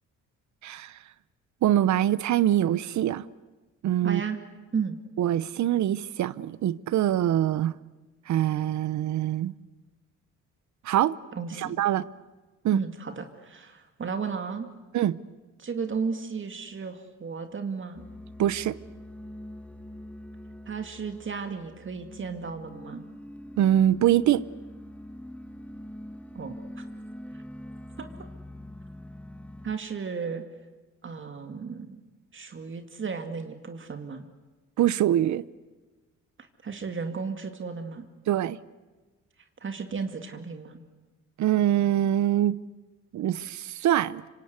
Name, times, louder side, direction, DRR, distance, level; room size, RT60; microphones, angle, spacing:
voice 1, 0.6-0.9 1.6-3.2 3.8-4.2 5.2-7.7 8.3-9.5 10.8-11.2 11.6-12.0 12.6-12.8 14.9-15.2 18.4-18.8 23.6-24.4 34.8-35.4 38.3-38.6 41.4-42.6 43.1-44.2, right 12 dB, 70° right, 0.9 m, -24 dB
voice 2, 4.0-4.4 4.7-5.0 11.3-11.7 12.7-14.7 15.6-18.0 20.7-23.0 26.3-26.8 28.0-28.1 29.6-30.4 31.0-32.0 32.3-34.2 36.4-38.1 39.6-40.8, right 5 dB, 40° right, 2.3 m, -34 dB
sound 1, 18.0-29.8, left 1 dB, 5° left, 1.2 m, -44 dB
26.0 x 25.5 x 8.3 m
cardioid pair, 90°, 30 cm